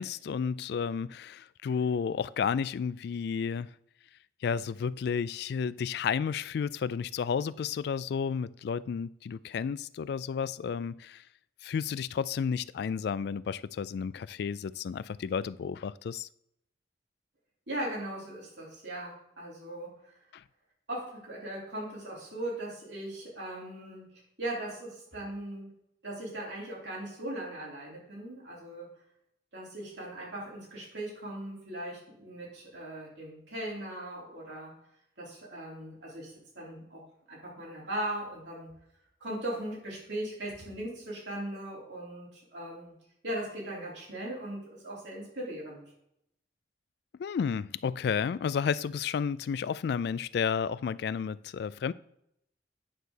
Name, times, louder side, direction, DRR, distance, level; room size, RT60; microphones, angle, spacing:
voice 1, 0.0-3.7 4.4-11.2 11.6-16.3 20.3-20.4 47.2-51.9, left 6 dB, 65° left, 0.3 m, -32 dB
voice 2, 17.7-20.1 20.9-24.1 24.4-25.7 26.0-28.9 29.5-34.7 35.2-37.0 37.3-38.8 39.2-42.9 43.2-45.8, right 1 dB, 85° right, 3.7 m, -39 dB
9.2 x 4.0 x 6.4 m
head